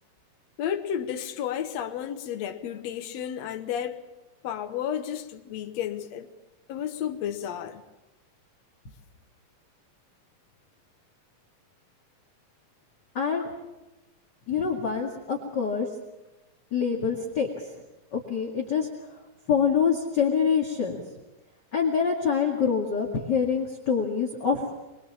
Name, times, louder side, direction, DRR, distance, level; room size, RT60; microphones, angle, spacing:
voice 1, 0.6-4.0 4.4-6.3 6.7-7.8, left 9 dB, 60° left, 2.2 m, -32 dB
voice 2, 13.1-13.5 14.5-15.9 16.7-17.5 18.1-18.9 19.5-21.0 21.7-24.6, left 6 dB, 35° left, 2.3 m, -25 dB
24.0 x 22.5 x 7.2 m
omnidirectional pair, 4.0 m